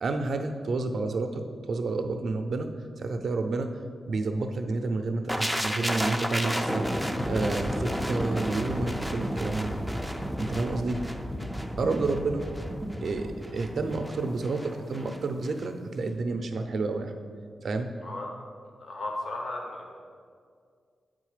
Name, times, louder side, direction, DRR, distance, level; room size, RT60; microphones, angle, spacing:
voice 1, 0.0-2.7 3.0-3.8 4.0-6.9 7.3-9.7 10.4-11.0 11.8-12.4 13.0-17.1 17.6-17.9, right 3 dB, 60° right, 6 dB, 0.5 m, -30 dB
sound 1, 5.3-15.2 15.4-15.6, equal, ahead, 0.4 m, -32 dB
voice 2, 18.8-19.9, left 2 dB, 55° left, 1 dB, 0.8 m, -35 dB
8.0 x 3.8 x 4.9 m, 2.1 s
wide cardioid pair, 145°, 0 cm